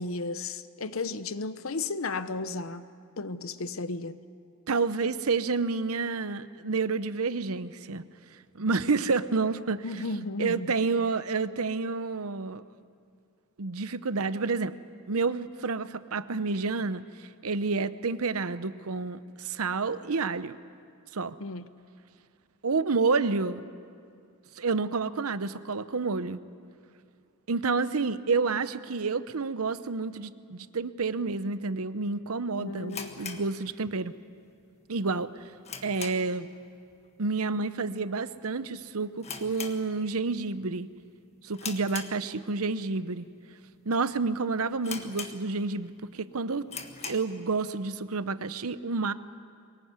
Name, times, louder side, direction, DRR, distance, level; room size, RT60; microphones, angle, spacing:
voice 1, 0.0-2.8 3.2-4.2 9.8-10.8 21.4-21.7 32.6-33.4, left 3 dB, 65° left, 13 dB, 0.9 m, -34 dB
voice 2, 4.7-8.0 8.5-10.0 10.4-12.6 13.6-14.7 15.1-17.0 17.4-20.6 21.1-21.3 22.6-23.6 24.6-26.4 27.5-34.1 34.9-35.3 35.8-36.5 37.2-40.9 41.4-43.2 43.8-46.6 47.0-49.1, right 4 dB, 80° right, 13 dB, 0.8 m, -29 dB
sound 1, 32.9-34.2 34.5-34.6 35.1-36.5 36.8-37.1 37.3-37.4 38.1-38.4 38.7-38.8 39.2-40.4 40.7-41.0 41.5-42.7 43.2-43.3 43.9-44.0 44.3-44.4 44.8-45.8 46.2-46.3 46.6-47.4, left 6 dB, 30° left, 1.5 m, -40 dB
23.5 x 20.5 x 9.6 m, 2.3 s
head